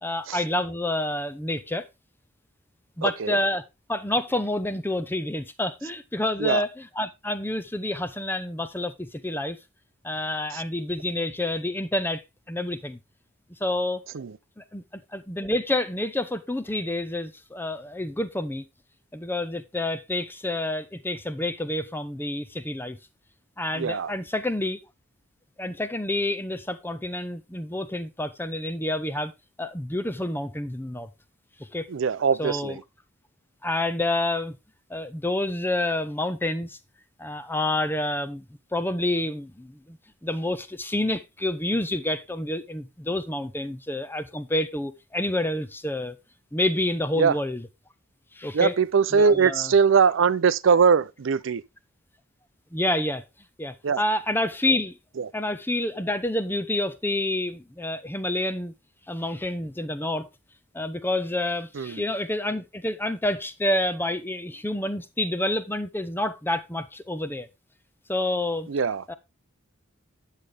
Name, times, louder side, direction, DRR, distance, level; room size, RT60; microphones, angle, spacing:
voice 1, 0.0-1.9 3.0-9.6 10.0-12.2 12.5-13.0 13.6-14.0 14.6-18.6 19.1-23.0 23.6-24.8 25.6-29.3 29.6-31.1 31.6-31.9 32.4-32.8 33.6-34.6 34.9-36.8 37.2-38.4 38.7-46.2 46.5-47.7 48.3-48.8 49.1-49.7 52.7-53.2 53.6-55.0 55.3-58.7 59.1-60.3 60.7-67.5 68.1-68.7 69.1-69.2, left 1 dB, 10° left, 0.7 m, -28 dB
voice 2, 3.0-3.4 6.4-6.6 14.1-14.3 23.8-24.1 31.9-32.7 47.2-47.3 48.5-51.6 53.8-54.0 61.8-62.0 68.7-69.0, right 6 dB, 70° right, 0.5 m, -21 dB
9.7 x 6.6 x 3.4 m
head